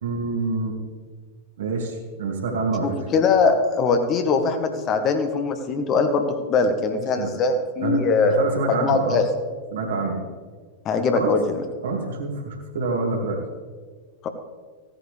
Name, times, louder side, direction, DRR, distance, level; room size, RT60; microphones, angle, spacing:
voice 1, 0.0-0.8 1.6-3.0 7.2-7.3 7.8-9.2 9.7-10.2 11.1-11.3 11.8-13.4, right 3 dB, 60° right, 1 dB, 2.4 m, -26 dB
voice 2, 2.8-8.4 8.7-9.3 10.8-11.6 14.2-14.3, left 4 dB, 30° left, 6 dB, 1.2 m, -21 dB
16.0 x 10.5 x 3.4 m, 1.5 s
figure-of-eight pair, 90°, 0 cm